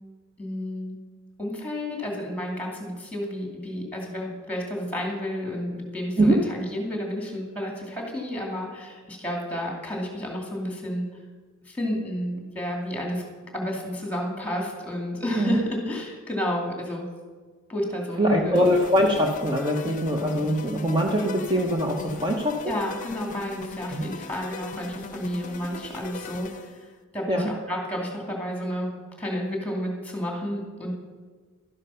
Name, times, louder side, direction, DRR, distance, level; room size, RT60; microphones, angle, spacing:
voice 1, 0.4-1.0 1.4-11.2 11.7-13.2 13.5-17.1 17.7-18.7 22.6-26.7 27.1-30.9, left 1 dB, 5° left, 0 dB, 2.5 m, -31 dB
voice 2, 18.2-22.6 23.9-24.0 27.3-27.5, equal, 20° right, 1 dB, 1.0 m, -23 dB
sound 1, 18.5-26.9, left 4 dB, 40° left, 0.7 m, -40 dB
12.5 x 10.5 x 5.7 m, 1.5 s
head